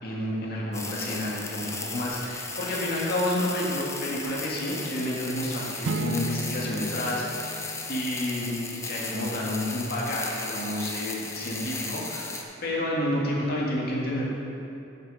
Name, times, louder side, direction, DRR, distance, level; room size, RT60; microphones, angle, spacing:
voice 1, 0.0-8.6 8.8-12.4 12.6-14.3, left 1 dB, 55° left, -4 dB, 2.1 m, -30 dB
sound 1, 0.7-12.4, left 3 dB, 15° left, 0.8 m, -36 dB
sound 2, 5.8-8.6, right 2 dB, 80° right, 0.4 m, -34 dB
9.6 x 7.9 x 5.0 m, 2.7 s
head